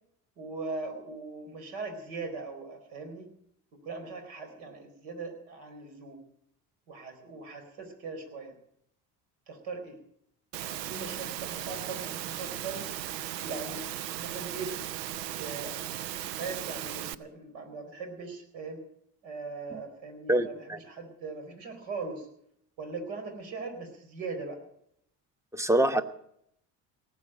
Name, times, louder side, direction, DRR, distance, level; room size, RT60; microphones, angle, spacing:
voice 1, 0.4-3.3 3.7-6.2 6.9-8.5 9.5-10.0 10.6-12.9 13.4-13.8 14.2-14.7 15.4-15.7 16.4-18.8 19.2-22.3 22.8-24.6, right 4 dB, 65° right, 5 dB, 4.4 m, -40 dB
Engine / Mechanisms, 10.5-17.1, right 12 dB, 85° right, 0.7 m, -37 dB
voice 2, 20.3-20.8 25.5-26.0, right 1 dB, 5° right, 12 dB, 1.0 m, -25 dB
18.5 x 7.8 x 9.0 m, 0.71 s
hypercardioid pair, 65°, 48 cm